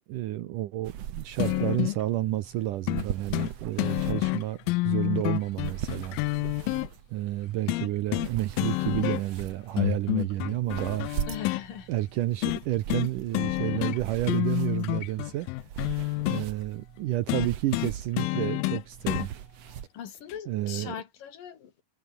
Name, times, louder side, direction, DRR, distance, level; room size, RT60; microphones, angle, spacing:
voice 1, 0.1-6.2 7.1-11.1 11.9-15.5 16.3-19.3 20.5-21.0, right 15 dB, 75° right, 2.0 m, -30 dB
sound 1, 0.8-19.9, right 10 dB, 60° right, 1.8 m, -41 dB
sound 2, 1.4-2.0 2.9-3.1 3.3-3.5 3.8-6.9 7.7-8.3 8.6-9.4 9.8-11.6 12.4-12.6 12.9-13.1 13.3-14.0 14.2-16.5 17.3-19.3 20.3-20.4, left 22 dB, 85° left, 2.1 m, -28 dB
voice 2, 11.3-11.9 19.9-21.8, left 9 dB, 60° left, 3.7 m, -39 dB
omnidirectional pair, 4.7 m